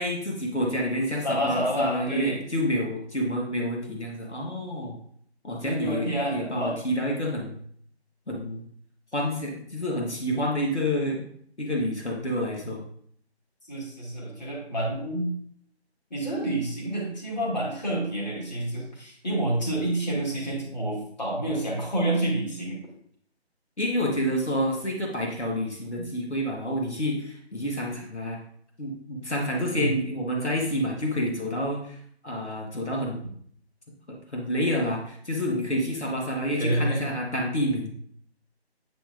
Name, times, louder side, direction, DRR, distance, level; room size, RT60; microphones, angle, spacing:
voice 1, 0.0-5.0 5.4-7.6 8.3-8.6 9.1-11.3 11.6-12.8 23.8-28.4 28.8-32.0 32.2-33.2 34.1-37.9, equal, 90° left, -1 dB, 1.7 m, -28 dB
voice 2, 1.2-2.4 5.6-6.8 13.7-15.3 16.1-22.8 29.7-29.9 36.6-37.0, right 1 dB, 40° left, -4 dB, 2.3 m, -28 dB
8.8 x 5.1 x 2.5 m, 0.64 s
figure-of-eight pair, 160°, 33 cm